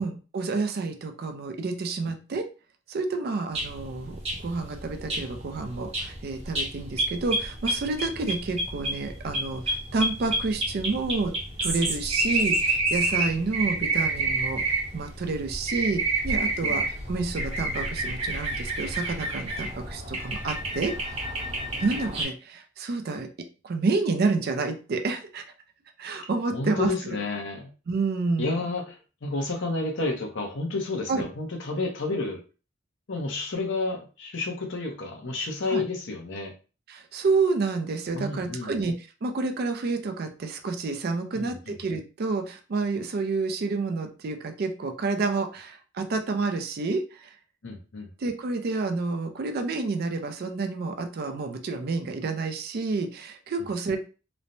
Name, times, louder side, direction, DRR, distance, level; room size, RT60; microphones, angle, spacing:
voice 1, 0.0-2.5 2.9-11.3 11.6-14.6 14.9-20.9 21.8-23.3 23.6-25.4 26.0-27.2 27.9-28.5 31.1-31.3 35.7-35.8 36.9-47.3 48.2-54.0, right 3 dB, 50° right, 6 dB, 0.4 m, -29 dB
sound 1, 3.5-22.2, right 2 dB, 30° right, 0.8 m, -29 dB
voice 2, 26.5-27.7 28.4-29.0 29.2-32.4 33.1-36.5 38.1-38.8 41.3-41.8 47.6-48.1, left 3 dB, 65° left, 2 dB, 0.7 m, -30 dB
3.1 x 2.1 x 2.6 m, 0.34 s
head